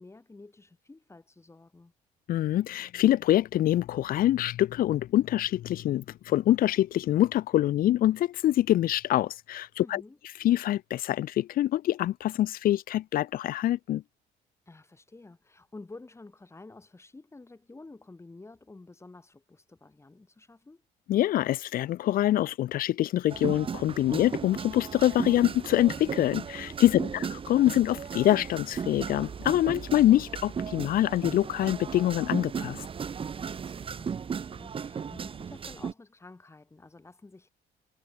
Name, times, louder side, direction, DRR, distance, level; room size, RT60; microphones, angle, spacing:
voice 1, 0.0-1.9 9.8-10.2 14.7-20.8 26.9-27.3 33.4-37.5, left 3 dB, 15° left, 4.9 m, -50 dB
voice 2, 2.3-10.0 10.4-14.0 21.1-32.8, left 13 dB, 60° left, 0.6 m, -25 dB
sound 1, 23.3-35.9, right 6 dB, 30° right, 1.1 m, -36 dB
cardioid pair, 110°, 17 cm